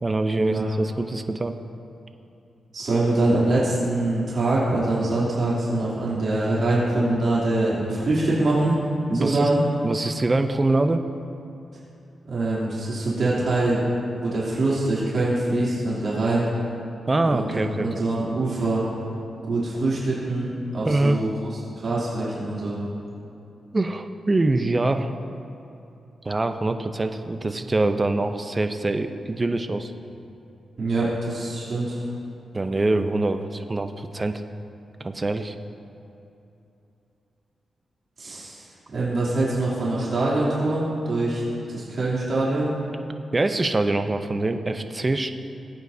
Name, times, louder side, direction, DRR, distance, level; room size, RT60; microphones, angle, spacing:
voice 1, 0.0-1.5 9.1-9.5 9.8-11.0 17.1-17.9 20.8-21.2 23.7-25.1 26.2-29.9 32.5-34.4 35.0-35.5 43.3-45.3, right 2 dB, 25° right, 8 dB, 0.6 m, -24 dB
voice 2, 2.7-8.8 9.2-9.6 12.2-13.9 14.2-16.4 17.2-18.8 19.4-20.5 20.7-22.8 30.8-32.0 38.2-38.6 38.9-41.4 41.7-42.7, right 2 dB, 60° right, -8 dB, 2.9 m, -24 dB
19.5 x 9.0 x 2.7 m, 2.8 s
cardioid pair, 85°, 0 cm